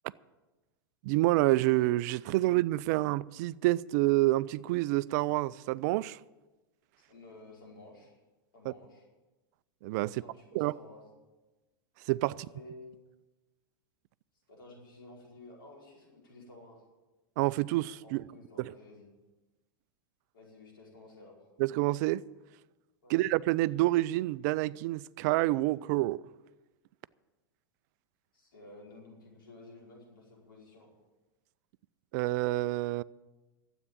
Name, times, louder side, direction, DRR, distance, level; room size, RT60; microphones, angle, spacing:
voice 1, 1.0-6.2 9.8-10.2 10.5-10.7 12.1-12.4 17.4-18.2 18.6-18.7 21.6-22.2 23.1-26.2 32.1-33.0, right 18 dB, 55° right, 0.4 m, -28 dB
voice 2, 7.0-8.2 8.5-9.0 10.0-11.1 12.2-12.9 14.5-16.8 18.0-19.1 20.3-21.5 23.0-23.1 28.3-30.9, left 2 dB, 75° left, 4.8 m, -53 dB
13.0 x 8.1 x 8.8 m
hypercardioid pair, 95°, 11 cm